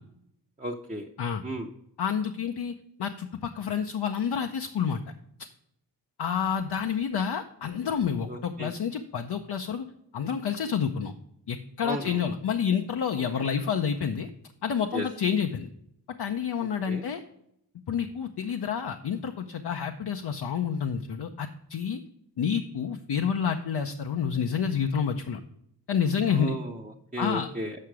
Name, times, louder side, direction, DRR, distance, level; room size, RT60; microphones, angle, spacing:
voice 1, 0.6-1.1 1.4-1.7 8.3-8.7 11.8-12.2 14.9-15.1 16.9-17.0 26.3-27.8, right 1 dB, 20° right, -2 dB, 0.8 m, -35 dB
voice 2, 2.0-2.7 3.0-5.0 6.2-9.8 10.1-11.1 11.5-14.3 14.6-15.7 16.2-17.2 17.9-22.0 22.4-25.4 25.9-26.6 27.2-27.5, left 7 dB, 70° left, 4 dB, 0.7 m, -29 dB
7.7 x 5.7 x 4.8 m, 0.76 s
cardioid pair, 60°, 42 cm